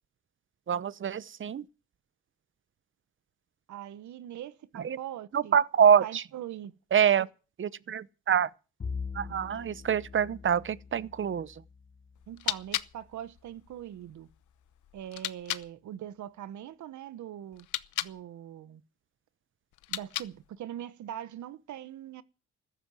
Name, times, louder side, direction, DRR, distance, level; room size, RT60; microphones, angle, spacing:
voice 1, 0.7-1.6 4.7-5.0 5.3-6.2 6.9-7.3 7.6-8.5 9.1-11.6, right 8 dB, 40° right, 0.9 m, -26 dB
voice 2, 3.7-5.6 6.0-6.7 7.2-7.3 12.3-14.3 14.9-17.7 18.0-18.8 19.9-22.2, right 11 dB, 70° right, 1.2 m, -42 dB
Bowed string instrument, 8.8-13.4, left 5 dB, 30° left, 1.0 m, -43 dB
sound 1, 12.1-15.7 17.5-18.2 19.7-20.6, left 14 dB, 80° left, 0.9 m, -37 dB
14.5 x 12.0 x 7.7 m
cardioid pair, 90°, 30 cm